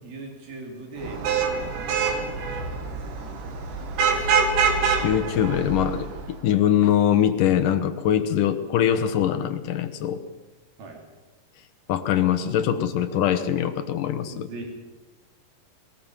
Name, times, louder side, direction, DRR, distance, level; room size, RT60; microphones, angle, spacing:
voice 1, 0.0-3.2 10.8-11.0 14.3-14.7, right 2 dB, 80° right, 2 dB, 4.9 m, -40 dB
Vehicle horn car horn honking / Traffic noise roadway noise, 1.0-6.3, right 5 dB, 65° right, 3.3 m, -25 dB
voice 2, 5.0-10.2 11.9-14.5, left 10 dB, 70° left, 11 dB, 2.4 m, -23 dB
21.0 x 19.0 x 7.3 m, 1.1 s
omnidirectional pair, 4.1 m